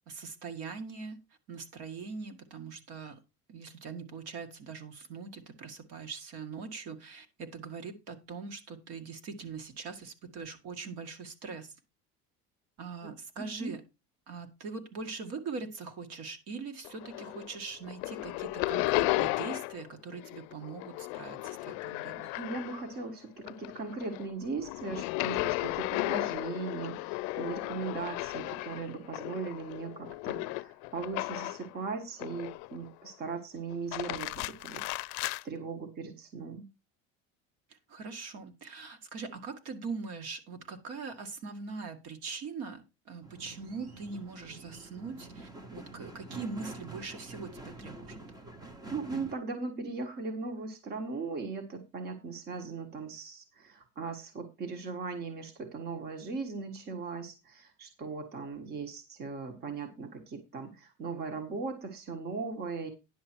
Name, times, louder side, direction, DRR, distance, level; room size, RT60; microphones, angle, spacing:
voice 1, 0.1-1.2 1.5-3.2 3.5-11.8 12.8-13.8 14.3-22.3 37.9-48.2, right 4 dB, 55° right, 7 dB, 1.9 m, -42 dB
voice 2, 13.4-13.7 22.4-36.7 48.9-62.9, right 4 dB, 35° right, 6 dB, 1.5 m, -38 dB
sound 1, 16.8-17.6 17.8-19.9 20.1-23.0 23.4-31.7 32.2-32.9 33.7-35.4, left 22 dB, 70° left, 0.5 m, -35 dB
sound 2, 43.2-49.3, right 2 dB, 15° right, 1.0 m, -47 dB
10.5 x 7.0 x 4.5 m, 0.25 s
cardioid pair, 165°, 30 cm